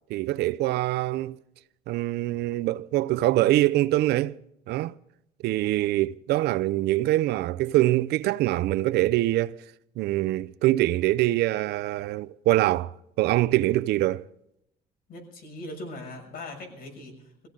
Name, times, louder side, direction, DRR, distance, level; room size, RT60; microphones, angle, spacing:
voice 1, 0.1-1.4 1.9-4.4 4.7-4.9 5.4-9.6 10.0-14.2, right 16 dB, 75° right, 0.5 m, -24 dB
voice 2, 15.1-17.5, left 1 dB, 60° left, 6.7 m, -40 dB
22.5 x 16.0 x 3.8 m
cardioid pair, 110°, 17 cm